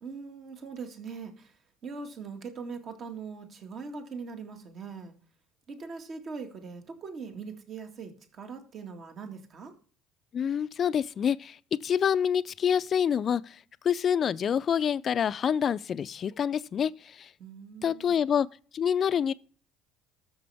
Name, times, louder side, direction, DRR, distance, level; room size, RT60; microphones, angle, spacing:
voice 1, 0.0-5.2 5.7-9.7 17.4-18.2, right 5 dB, 50° right, 2.0 m, -41 dB
voice 2, 10.3-11.6 11.8-13.6 13.8-17.3 17.8-18.5 18.7-19.3, left 8 dB, 45° left, 0.5 m, -27 dB
13.5 x 6.7 x 3.5 m
hypercardioid pair, 70°, 0 cm